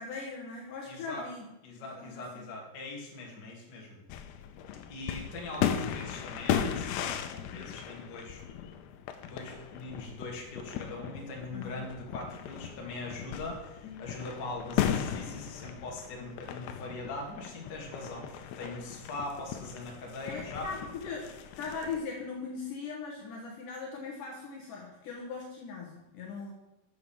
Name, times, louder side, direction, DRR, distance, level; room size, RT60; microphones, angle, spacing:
voice 1, 0.0-2.4 7.5-7.7 11.5-11.9 13.8-14.0 18.6-18.7 20.2-21.3 21.6-26.5, left 4 dB, 65° left, -2 dB, 2.4 m, -40 dB
voice 2, 0.8-1.3 1.6-4.0 4.8-8.4 9.2-20.7, left 2 dB, 35° left, -1 dB, 1.9 m, -41 dB
sound 1, 4.1-22.0, left 9 dB, 85° left, 2.8 m, -37 dB
7.5 x 6.7 x 7.0 m, 0.95 s
omnidirectional pair, 4.7 m